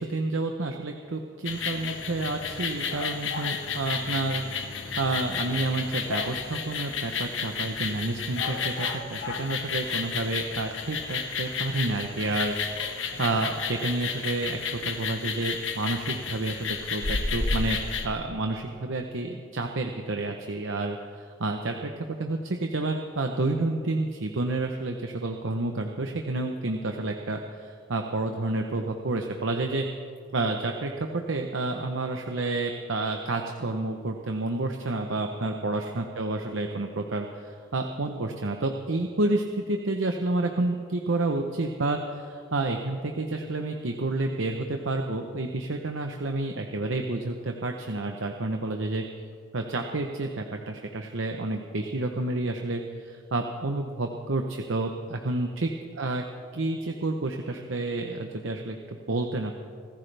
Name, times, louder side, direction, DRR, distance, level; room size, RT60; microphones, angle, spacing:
voice 1, 0.0-4.4 5.0-12.5 12.8-14.6 14.8-17.8 18.0-21.9 22.2-29.8 30.3-49.0 49.5-55.7 56.0-56.2 56.5-59.6, right 2 dB, 75° right, 4 dB, 0.8 m, -30 dB
sound 1, 1.5-18.1, left 5 dB, 70° left, 1.2 m, -32 dB
25.0 x 14.5 x 3.4 m, 2.1 s
head